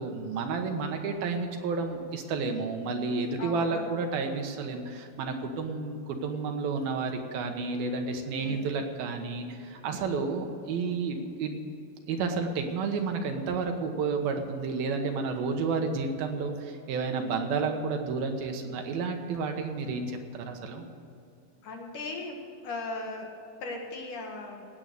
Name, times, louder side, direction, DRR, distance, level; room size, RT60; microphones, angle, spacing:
voice 1, 0.0-11.6 12.1-20.8, right 4 dB, 75° right, 4 dB, 2.9 m, -31 dB
voice 2, 3.4-4.0 8.4-8.8 21.6-22.4 22.6-24.7, left 3 dB, 60° left, 1 dB, 2.8 m, -38 dB
18.0 x 8.8 x 6.7 m, 2.6 s
omnidirectional pair, 4.5 m